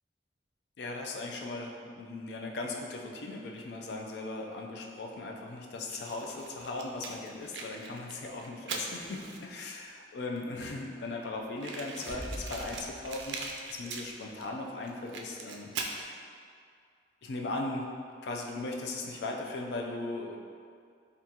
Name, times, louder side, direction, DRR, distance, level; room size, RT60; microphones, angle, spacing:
voice 1, 0.8-16.0 17.2-17.9 18.2-20.4, left 2 dB, 65° left, 0 dB, 0.4 m, -38 dB
Fire, 5.9-9.7 10.4-10.5 10.6-10.7 10.9-11.0 11.6-14.5 14.8-16.0, right 4 dB, 85° right, 0.3 m, -41 dB
sound 1, 11.8-13.8, equal, ahead, 0.5 m, -43 dB
3.7 x 2.4 x 2.8 m, 2.3 s
head